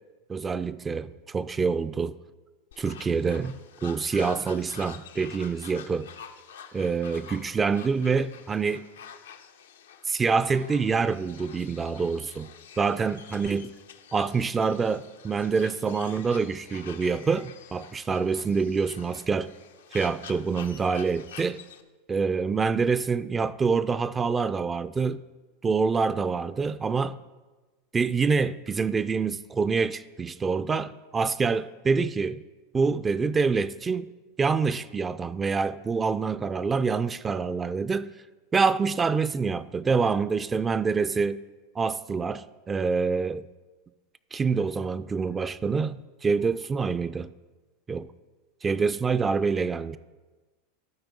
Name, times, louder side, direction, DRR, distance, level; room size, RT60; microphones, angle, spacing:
voice 1, 0.3-2.1 2.8-6.1 6.7-8.8 10.1-12.5 12.8-13.7 14.1-19.5 19.9-21.6 22.1-25.2 25.6-27.2 27.9-32.4 32.7-34.1 34.4-38.1 38.5-41.4 41.8-43.5 44.3-47.3 47.9-48.1 48.6-50.0, right 5 dB, 20° right, 0.3 m, -26 dB
sound 1, 2.7-21.8, left 7 dB, 85° left, 0.6 m, -47 dB
12.5 x 4.4 x 5.2 m
hypercardioid pair, 105°, 0 cm